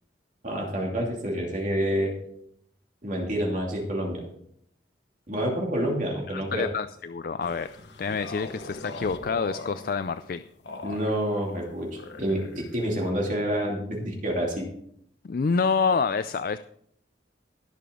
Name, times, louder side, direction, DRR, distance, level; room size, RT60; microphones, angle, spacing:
voice 1, 0.4-2.1 3.0-4.2 5.3-6.7 10.8-14.7, equal, 45° right, -1 dB, 2.6 m, -28 dB
voice 2, 6.3-7.7 8.0-10.4 15.2-16.6, left 5 dB, 50° left, 12 dB, 0.4 m, -27 dB
sound 1, 7.4-13.1, left 2 dB, 70° left, 1.2 m, -41 dB
19.0 x 6.8 x 3.8 m, 0.68 s
head